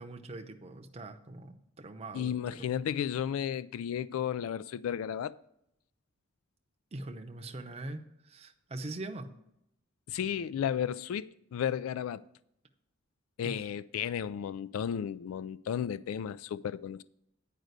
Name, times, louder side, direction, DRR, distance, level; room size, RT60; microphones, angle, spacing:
voice 1, 0.0-2.7 6.9-9.3 13.4-13.7, right 2 dB, 30° right, 0.6 m, -42 dB
voice 2, 2.1-5.3 10.1-12.2 13.4-17.0, left 8 dB, 90° left, 0.3 m, -33 dB
9.3 x 5.0 x 6.6 m
head